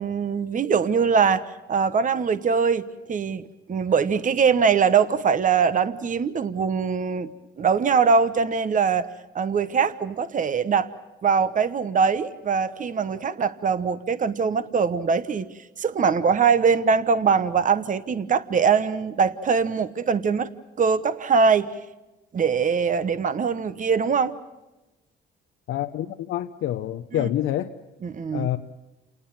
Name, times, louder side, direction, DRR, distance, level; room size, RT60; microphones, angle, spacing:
voice 1, 0.0-7.3 7.6-9.1 9.3-10.9 11.2-15.5 15.8-20.5 20.8-21.7 22.3-24.4 27.1-27.2 28.0-28.5, right 6 dB, 40° right, 12 dB, 1.0 m, -22 dB
voice 2, 25.7-27.7 28.3-28.6, left 12 dB, 80° left, 6 dB, 0.9 m, -27 dB
28.5 x 19.0 x 7.3 m, 1.0 s
cardioid pair, 90°, 20 cm